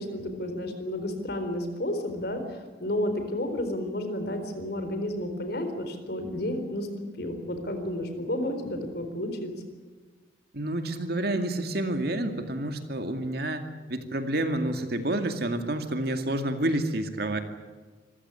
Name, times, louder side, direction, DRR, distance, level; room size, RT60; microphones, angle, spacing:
voice 1, 0.0-6.9 7.2-9.5, left 1 dB, 55° left, 7 dB, 4.1 m, -31 dB
voice 2, 10.5-17.4, right 1 dB, 55° right, 6 dB, 2.3 m, -29 dB
26.0 x 15.0 x 9.9 m, 1.4 s
head